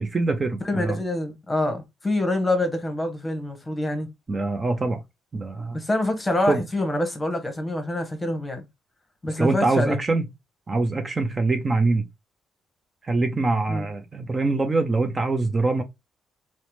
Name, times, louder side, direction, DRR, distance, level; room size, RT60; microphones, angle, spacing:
voice 1, 0.0-1.0 4.3-5.0 5.3-5.8 6.5-6.6 9.4-10.3 10.7-12.1 13.0-15.8, right 3 dB, 30° right, 0.4 m, -24 dB
voice 2, 0.6-4.1 5.7-8.6 9.2-10.0 13.7-13.9, left 1 dB, 20° left, 1.0 m, -26 dB
2.8 x 2.1 x 3.0 m
cardioid pair, 90°, 0 cm